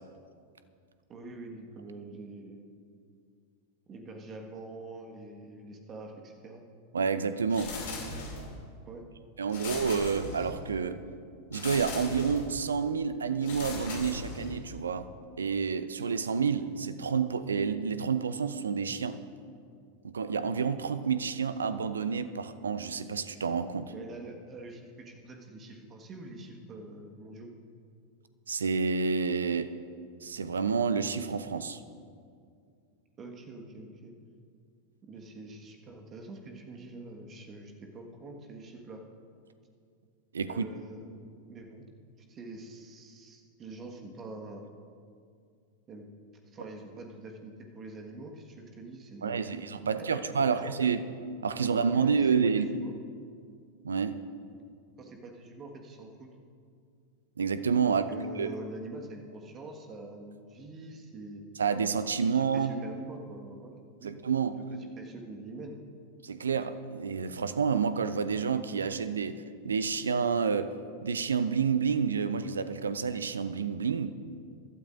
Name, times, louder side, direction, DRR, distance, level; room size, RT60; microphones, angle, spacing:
voice 1, 1.1-2.7 3.9-6.6 8.8-9.0 9.5-9.7 23.9-27.5 33.2-34.1 35.0-39.0 40.5-41.8 42.2-44.6 45.9-46.1 46.5-49.6 50.0-50.7 51.6-52.9 55.0-56.3 57.8-61.4 62.3-64.1 65.0-65.8, right 2 dB, 25° right, 2 dB, 1.5 m, -45 dB
voice 2, 6.9-7.8 9.4-11.0 11.5-15.1 15.4-19.2 20.0-23.9 28.5-29.7 30.2-31.8 40.3-40.6 49.2-51.0 51.4-52.7 53.8-54.2 57.4-58.0 58.4-58.5 61.6-62.7 64.0-64.6 66.2-70.7 71.0-74.1, right 6 dB, 70° right, 12 dB, 0.6 m, -29 dB
sound 1, 7.5-8.6 9.5-10.7 11.5-12.6 13.4-14.7, left 3 dB, 55° left, 2.6 m, -39 dB
23.5 x 12.0 x 2.6 m, 2.3 s
figure-of-eight pair, 90°, 0 cm